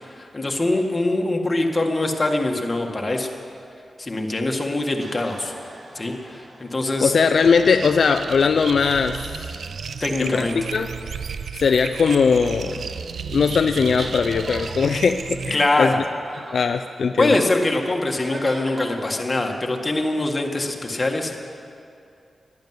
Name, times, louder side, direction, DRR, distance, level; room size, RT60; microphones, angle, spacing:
voice 1, 0.2-3.3 4.0-5.5 5.9-7.1 10.0-10.6 15.5-16.0 17.2-21.3, left 2 dB, 30° left, 2 dB, 1.8 m, -23 dB
sound 1, 5.0-8.2 8.8-9.3 9.7-9.8 12.1-12.2 12.4-13.2 13.6-13.7 13.9-14.8 15.1-15.2 16.3-16.6 18.2-19.0, right 2 dB, 45° right, 2.2 m, -41 dB
voice 2, 7.0-9.5 10.2-10.9 11.5-12.8 13.3-16.0 16.5-17.4, left 5 dB, 75° left, 7 dB, 0.5 m, -20 dB
sound 2, 7.2-15.6, right 6 dB, 80° right, 0.5 m, -33 dB
12.0 x 11.0 x 9.5 m, 2.5 s
cardioid pair, 65°, 0 cm